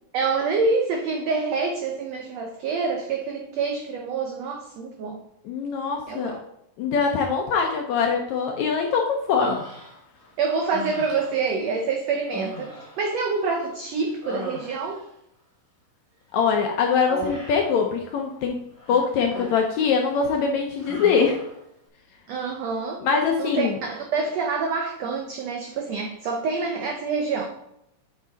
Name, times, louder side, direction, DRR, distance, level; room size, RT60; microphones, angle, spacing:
voice 1, 0.1-5.2 6.1-6.4 10.4-15.0 22.3-23.0 23.4-27.5, right 4 dB, 90° right, 3 dB, 1.4 m, -27 dB
voice 2, 5.5-6.4 6.8-9.6 16.3-21.4 23.0-23.8, left 5 dB, 75° left, 2 dB, 1.7 m, -23 dB
Human voice, 9.4-10.3 10.7-11.5 12.2-13.7 14.0-15.1 17.1-17.8 18.8-19.8 20.1-20.4 20.8-21.6, equal, 5° right, 2.6 m, -36 dB
7.9 x 6.0 x 4.0 m, 0.79 s
omnidirectional pair, 4.0 m